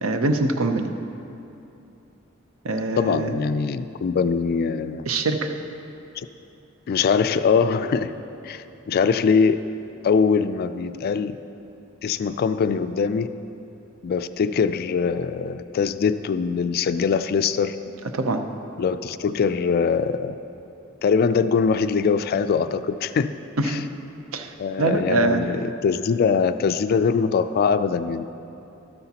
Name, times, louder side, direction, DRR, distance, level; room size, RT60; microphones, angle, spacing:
voice 1, 0.0-0.9 2.6-3.3 5.1-5.5 18.1-18.4 23.6-23.8 24.3-25.4, right 2 dB, 75° right, 6 dB, 0.6 m, -23 dB
voice 2, 3.0-5.1 6.2-6.3 6.9-8.1 8.4-9.6 10.0-11.4 12.0-13.3 14.0-17.8 18.8-20.3 21.0-23.3 23.6-23.8 24.6-28.2, left 5 dB, 50° left, 12 dB, 0.3 m, -22 dB
12.5 x 9.7 x 2.9 m, 2.8 s
head